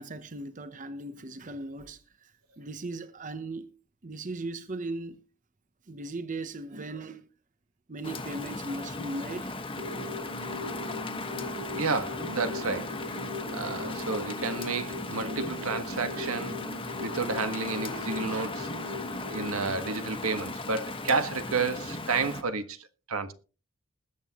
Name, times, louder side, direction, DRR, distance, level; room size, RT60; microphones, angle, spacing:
voice 1, 0.0-2.3 2.6-3.7 4.0-5.2 5.9-7.3 7.9-9.6, right 2 dB, 35° right, 0.8 m, -38 dB
Rain, 8.0-22.4, left 2 dB, 25° left, 1.4 m, -37 dB
sound 1, 9.8-19.8, left 2 dB, 60° right, 7.7 m, -40 dB
voice 2, 11.7-12.9 13.5-16.6 17.0-18.7 19.3-22.8 23.1-23.3, right 4 dB, 90° right, 1.5 m, -31 dB
21.0 x 8.3 x 3.0 m
head